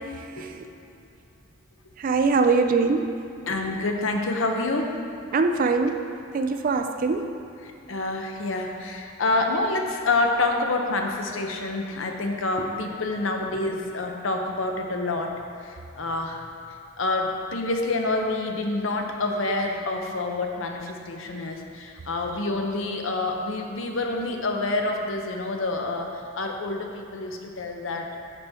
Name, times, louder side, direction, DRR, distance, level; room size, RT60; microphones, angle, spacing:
voice 1, 0.1-0.6 2.0-3.1 5.3-6.1 6.3-7.3, right 4 dB, 40° right, 7 dB, 0.3 m, -23 dB
voice 2, 3.4-5.0 7.6-15.3 15.6-16.4 17.0-28.2, left 2 dB, 70° left, 2 dB, 0.7 m, -27 dB
10.5 x 4.3 x 3.5 m, 2.6 s
head